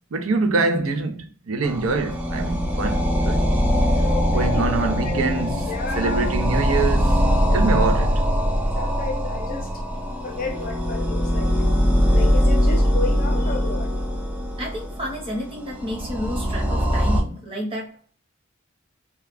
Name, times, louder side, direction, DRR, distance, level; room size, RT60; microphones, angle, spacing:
voice 1, 0.1-3.4 4.3-7.1 7.5-8.2, right 3 dB, 90° right, 0.5 m, -24 dB
sound 1, 1.6-17.2, equal, 5° right, 0.3 m, -22 dB
voice 2, 4.0-4.7 5.0-5.3 5.7-6.8 7.4-7.8 8.8-9.7 10.2-11.5 12.1-14.0, left 3 dB, 40° left, 0.6 m, -32 dB
voice 3, 14.6-18.1, equal, 25° right, 0.9 m, -31 dB
2.3 x 2.2 x 3.2 m
head